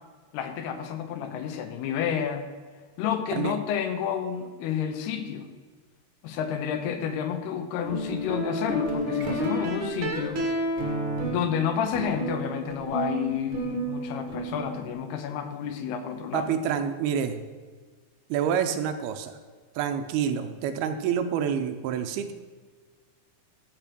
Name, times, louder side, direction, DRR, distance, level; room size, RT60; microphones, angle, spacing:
voice 1, 0.3-2.5 3.0-5.5 6.2-10.4 11.3-16.5, left 8 dB, 85° left, 7 dB, 3.0 m, -30 dB
sound 1, 7.8-14.9, right 1 dB, 50° right, 1.6 m, -31 dB
voice 2, 16.3-17.4 18.3-19.3 19.8-22.3, right 8 dB, 80° right, 8 dB, 2.5 m, -27 dB
14.0 x 5.1 x 6.1 m, 1.5 s
omnidirectional pair, 4.6 m